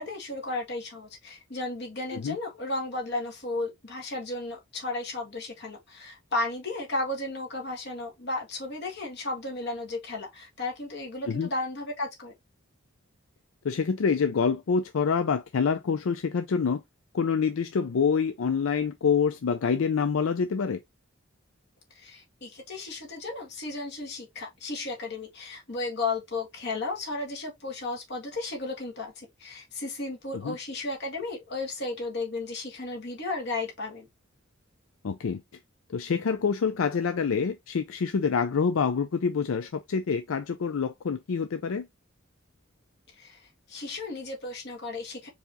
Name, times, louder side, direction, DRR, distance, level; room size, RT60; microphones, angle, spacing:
voice 1, 0.0-12.3 22.0-34.1 43.2-45.3, left 2 dB, 55° left, 1.8 m, -34 dB
voice 2, 13.6-16.8 17.1-20.8 30.3-30.6 35.0-35.4 35.9-41.9, left 6 dB, 75° left, 0.4 m, -26 dB
4.7 x 2.9 x 3.9 m
head